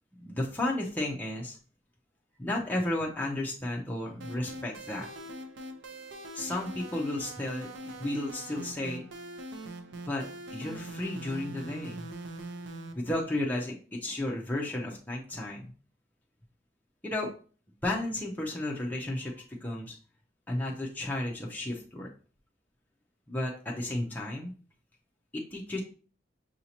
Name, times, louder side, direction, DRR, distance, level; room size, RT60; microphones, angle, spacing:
voice 1, 0.2-1.6 2.4-5.1 6.3-9.1 10.1-10.2 10.5-12.1 12.9-15.6 17.0-17.3 17.8-19.3 19.6-19.9 20.5-22.1 23.3-24.5 25.3-25.8, left 1 dB, 10° left, -2 dB, 0.6 m, -33 dB
sound 1, 4.2-12.9, right 1 dB, 85° right, 0.6 m, -42 dB
5.7 x 2.8 x 2.8 m, 0.38 s
head